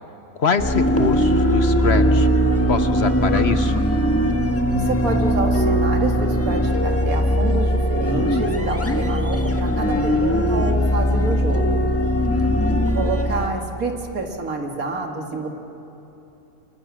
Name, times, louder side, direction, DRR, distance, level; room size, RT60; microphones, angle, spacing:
voice 1, 0.4-2.3 2.7-3.9, left 5 dB, 50° left, 10 dB, 1.0 m, -24 dB
sound 1, 0.6-13.5, equal, 10° left, 1.4 m, -20 dB
voice 2, 4.7-12.0 12.9-15.5, right 3 dB, 75° right, 3 dB, 2.4 m, -28 dB
28.5 x 24.5 x 7.4 m, 3.0 s
omnidirectional pair, 1.5 m